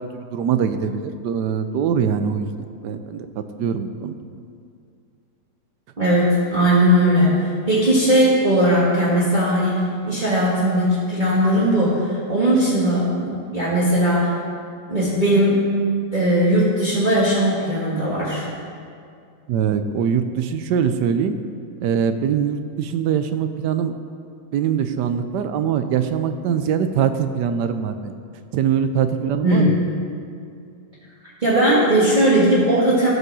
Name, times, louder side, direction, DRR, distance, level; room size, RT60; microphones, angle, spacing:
voice 1, 0.0-3.3 3.6-4.2 19.5-21.4 21.8-23.9 24.5-28.1 28.5-29.7, right 7 dB, 80° right, 9 dB, 1.2 m, -22 dB
voice 2, 6.0-7.4 7.7-9.7 10.0-14.3 14.9-15.6 16.1-18.4 29.4-29.7 31.4-33.1, equal, 30° right, -8 dB, 1.7 m, -18 dB
14.0 x 5.2 x 6.2 m, 2.4 s
omnidirectional pair, 1.8 m